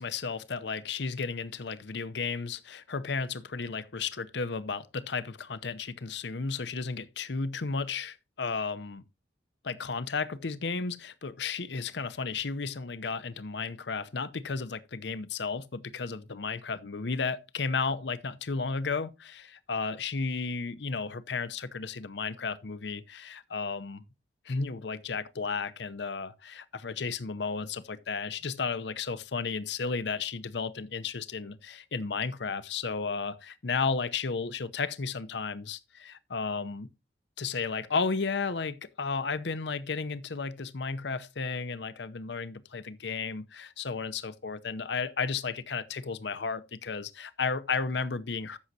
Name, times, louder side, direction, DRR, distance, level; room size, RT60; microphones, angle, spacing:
voice 1, 0.0-9.0 9.6-24.0 24.5-36.9 37.4-48.6, left 4 dB, 70° left, 0.7 m, -33 dB
14.0 x 6.4 x 2.7 m
head